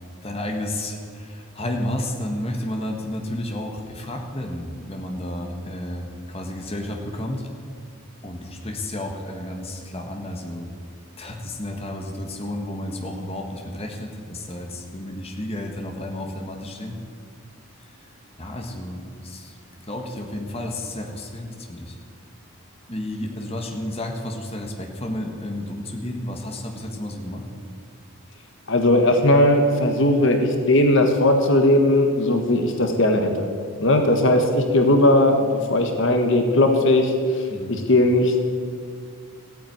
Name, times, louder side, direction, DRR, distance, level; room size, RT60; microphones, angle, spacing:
voice 1, 0.2-7.4 8.2-10.7 11.2-17.0 18.4-19.5 19.9-22.0 22.9-27.4 37.5-37.8, left 1 dB, 25° left, 2 dB, 1.5 m, -31 dB
voice 2, 28.7-33.5 33.8-37.4 37.7-38.4, left 1 dB, 55° left, 4 dB, 1.4 m, -18 dB
14.5 x 9.2 x 9.4 m, 2.2 s
head